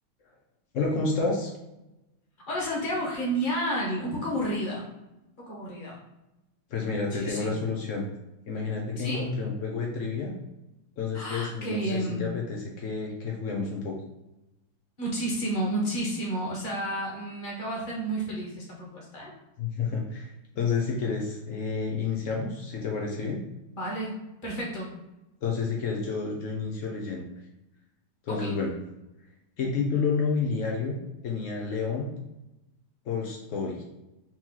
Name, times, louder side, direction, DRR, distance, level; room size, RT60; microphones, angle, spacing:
voice 1, 0.7-1.5 6.7-8.0 8.5-10.3 11.0-14.0 19.6-23.4 25.4-27.2 28.3-28.7 29.6-31.0 31.2-32.1 33.1-33.8, left 4 dB, 80° left, -1 dB, 0.6 m, -30 dB
voice 2, 2.5-4.9 5.4-6.0 7.1-7.5 9.0-9.3 11.1-12.2 15.0-19.3 23.7-24.2 24.4-24.9 28.3-28.5, right 1 dB, 30° left, -3 dB, 1.2 m, -31 dB
4.5 x 2.9 x 3.7 m, 0.95 s
omnidirectional pair, 2.2 m